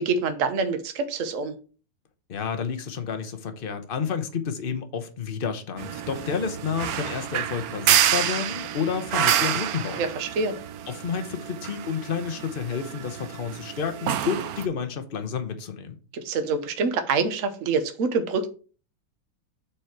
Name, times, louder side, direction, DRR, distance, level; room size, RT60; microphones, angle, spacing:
voice 1, 0.0-1.5 10.0-10.6 16.1-18.5, right 4 dB, 50° right, 1.1 m, -26 dB
voice 2, 2.3-10.1 10.9-16.0, left 6 dB, 40° left, 0.8 m, -30 dB
sound 1, 5.8-14.7, right 10 dB, 70° right, 0.9 m, -28 dB
8.3 x 4.4 x 4.7 m
omnidirectional pair, 2.1 m